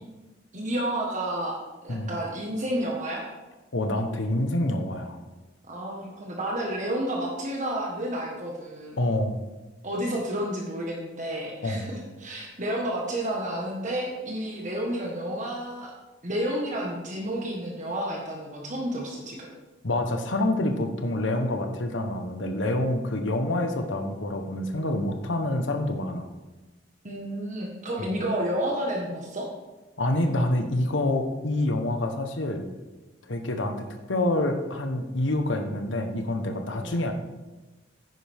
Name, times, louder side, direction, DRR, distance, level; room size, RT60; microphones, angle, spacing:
voice 1, 0.5-1.6 1.8-3.2 5.7-9.0 9.8-15.9 16.2-19.5 27.0-29.5 36.7-36.9, right 1 dB, 40° right, -1 dB, 1.5 m, -30 dB
voice 2, 3.7-5.2 9.0-9.4 11.6-11.9 19.8-26.3 30.0-32.7 33.3-37.1, left 1 dB, 80° left, 6 dB, 1.1 m, -27 dB
9.9 x 9.5 x 3.6 m, 1.2 s
head